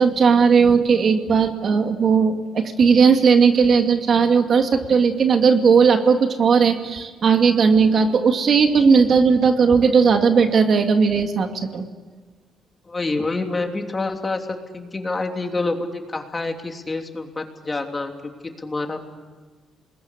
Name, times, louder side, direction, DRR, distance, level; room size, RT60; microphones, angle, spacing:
voice 1, 0.0-11.8, right 5 dB, 55° right, 5 dB, 2.3 m, -17 dB
voice 2, 12.9-14.5 14.7-19.0, left 3 dB, 25° left, 4 dB, 3.1 m, -27 dB
27.5 x 21.0 x 10.0 m, 1.4 s
cardioid pair, 90°, 0 cm